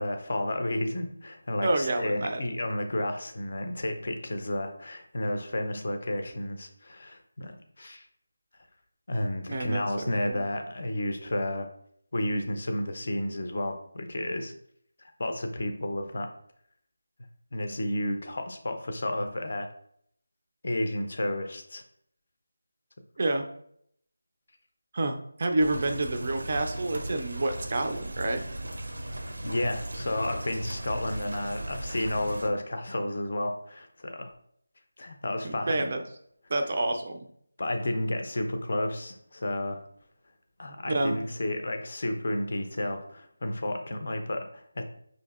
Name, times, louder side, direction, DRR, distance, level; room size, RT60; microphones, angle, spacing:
voice 1, 0.0-8.1 9.1-11.7 12.1-14.5 15.2-16.3 17.5-19.7 20.6-21.8 29.4-34.3 35.0-35.8 37.6-39.8 40.6-44.8, left 1 dB, 45° left, 6 dB, 0.5 m, -31 dB
voice 2, 1.6-2.4 9.5-10.4 23.2-23.4 24.9-28.4 35.4-36.0 36.5-37.2 40.9-41.1, right 2 dB, 30° right, 6 dB, 0.3 m, -28 dB
sound 1, 25.6-32.5, right 1 dB, 90° right, 0.5 m, -37 dB
5.1 x 2.6 x 2.4 m, 0.69 s
figure-of-eight pair, 175°, 0 cm